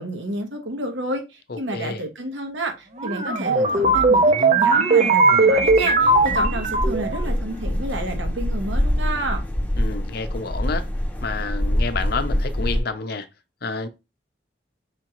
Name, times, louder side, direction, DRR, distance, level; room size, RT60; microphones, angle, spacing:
voice 1, 0.0-9.5, right 1 dB, 75° right, 1.1 m, -30 dB
voice 2, 1.5-2.0 9.7-10.9 11.2-13.3 13.6-13.9, left 4 dB, 55° left, 0.6 m, -29 dB
sound 1, 3.0-7.2, right 3 dB, 35° right, 0.6 m, -18 dB
sound 2, 6.0-12.8, left 1 dB, 10° left, 0.8 m, -25 dB
4.9 x 3.6 x 3.0 m
head